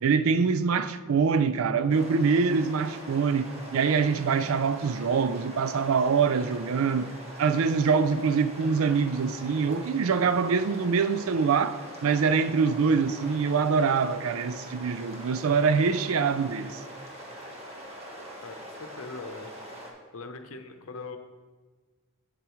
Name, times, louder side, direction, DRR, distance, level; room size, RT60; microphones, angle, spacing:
voice 1, 0.0-7.1 7.4-16.8, right 5 dB, 80° right, 0.4 m, -24 dB
sound 1, 1.9-19.9, equal, 30° right, 1.1 m, -43 dB
voice 2, 18.4-19.5 20.1-21.2, left 3 dB, 85° left, 0.7 m, -41 dB
8.2 x 7.4 x 3.0 m
head